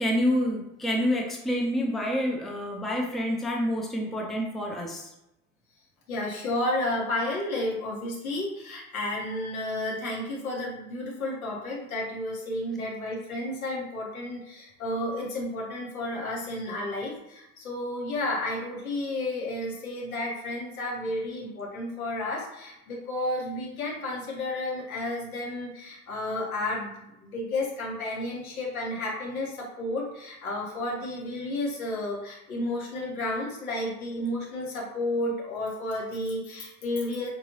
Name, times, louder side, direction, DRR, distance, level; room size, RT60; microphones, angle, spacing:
voice 1, 0.0-5.1, equal, ahead, -1 dB, 0.6 m, -28 dB
voice 2, 6.1-37.3, left 1 dB, 75° left, -3 dB, 1.2 m, -32 dB
4.6 x 2.6 x 2.8 m, 0.87 s
figure-of-eight pair, 60°, 43 cm